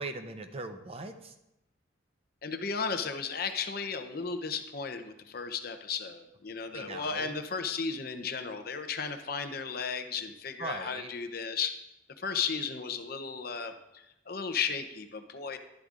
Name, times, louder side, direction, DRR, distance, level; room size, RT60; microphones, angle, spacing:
voice 1, 0.0-1.3 6.7-7.3 10.6-11.1, right 3 dB, 30° right, 7 dB, 0.6 m, -39 dB
voice 2, 2.4-11.8 12.2-15.6, left 5 dB, 50° left, 8 dB, 0.7 m, -35 dB
11.5 x 11.5 x 2.5 m, 0.89 s
head